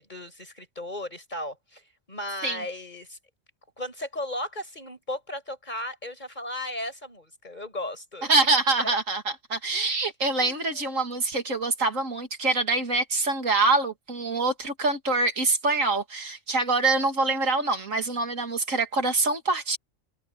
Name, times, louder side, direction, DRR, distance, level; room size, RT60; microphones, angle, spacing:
voice 1, 0.0-1.8 2.1-3.2 3.8-8.3 8.8-9.0 9.7-10.0 10.4-11.0, left 1 dB, 35° left, 5.9 m, -36 dB
voice 2, 8.3-19.8, right 3 dB, 85° right, 3.0 m, -25 dB
omnidirectional pair, 1.3 m